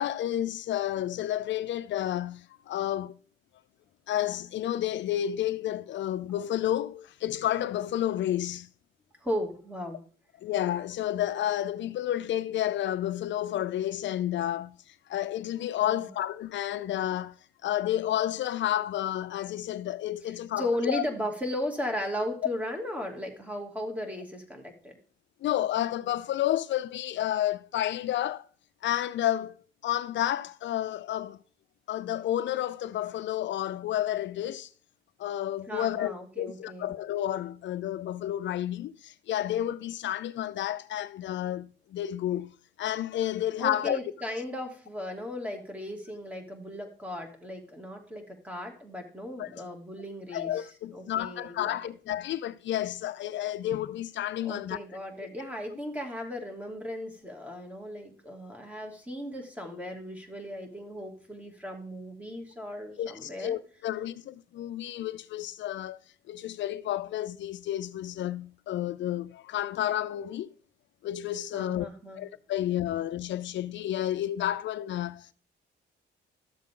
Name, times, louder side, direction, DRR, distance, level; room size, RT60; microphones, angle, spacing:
voice 1, 0.0-3.2 4.1-8.7 10.4-17.4 17.6-21.0 25.4-28.5 28.8-29.5 29.8-31.4 31.9-34.7 35.2-44.0 49.4-49.6 50.3-54.8 63.0-66.0 66.3-70.5 71.0-71.9 72.2-75.3, left 12 dB, 65° left, 0.5 m, -31 dB
voice 2, 9.2-10.0 15.8-16.1 20.2-25.0 35.7-36.9 43.6-51.8 54.4-63.5 71.5-72.2, left 1 dB, 5° right, 2.6 m, -36 dB
13.0 x 7.3 x 3.8 m
cardioid pair, 90°, 20 cm